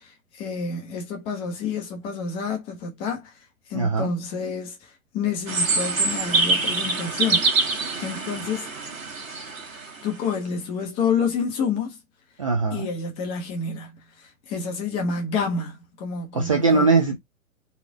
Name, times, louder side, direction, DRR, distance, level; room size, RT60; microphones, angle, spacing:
voice 1, 0.0-3.4 3.7-7.5 8.0-8.7 10.0-12.0 12.7-17.1, left 5 dB, 15° left, 0.7 m, -29 dB
voice 2, 3.7-4.1 12.4-12.9 16.3-17.2, right 4 dB, 25° right, 0.4 m, -20 dB
sound 1, 5.5-10.0, right 3 dB, 65° right, 1.4 m, -25 dB
4.2 x 2.4 x 4.0 m
figure-of-eight pair, 120°, 44 cm